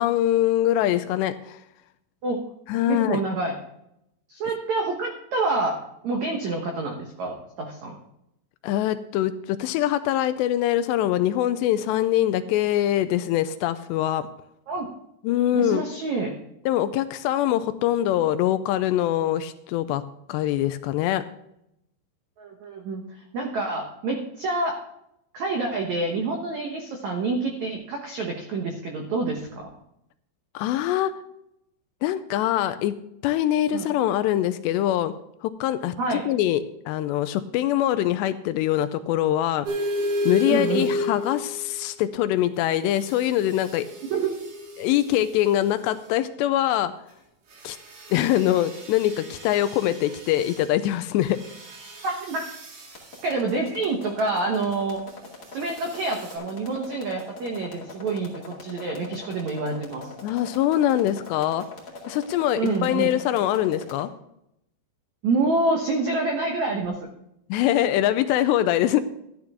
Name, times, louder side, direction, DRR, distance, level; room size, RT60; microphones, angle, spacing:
voice 1, 0.0-1.6 2.7-3.2 8.6-14.3 15.3-15.8 16.7-20.0 20.3-21.2 30.5-31.1 32.0-33.0 33.2-35.1 35.4-39.7 40.3-43.9 44.8-46.9 47.6-47.8 48.1-51.4 60.2-61.7 62.1-64.1 67.5-69.0, left 12 dB, 85° left, 11 dB, 2.6 m, -23 dB
voice 2, 2.9-3.6 4.3-8.0 14.7-14.9 15.5-16.3 22.4-24.8 25.3-29.7 33.7-33.9 36.0-36.3 40.4-40.9 44.1-44.3 52.0-52.4 53.2-55.0 55.5-60.1 62.6-63.1 65.2-67.0 68.3-68.4, right 3 dB, 85° right, 2 dB, 1.6 m, -27 dB
sound 1, 39.7-41.8 42.9-45.4 47.5-50.7 51.3-53.2 55.6-56.3, left 1 dB, 65° right, 4.5 m, -33 dB
sound 2, 52.8-64.0, left 3 dB, 35° left, 1.8 m, -42 dB
12.5 x 10.5 x 3.6 m, 0.79 s
omnidirectional pair, 5.2 m